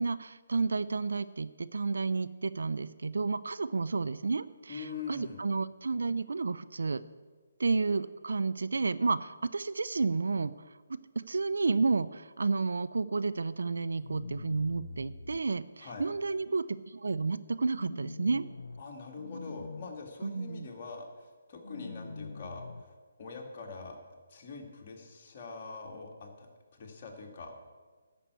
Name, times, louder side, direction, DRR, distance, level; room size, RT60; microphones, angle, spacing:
voice 1, 0.0-7.0 7.6-10.5 11.2-18.4 20.2-20.7, right 4 dB, 70° right, 14 dB, 0.5 m, -31 dB
voice 2, 4.7-5.4 15.8-16.1 18.8-24.0 24.3-27.5, left 4 dB, 40° left, 0 dB, 2.2 m, -44 dB
sound 1, 14.0-15.4 17.7-18.8 19.2-19.9 21.6-22.8, left 3 dB, 80° left, 0.5 m, -43 dB
12.5 x 6.0 x 8.1 m, 1.4 s
figure-of-eight pair, 145°, 0 cm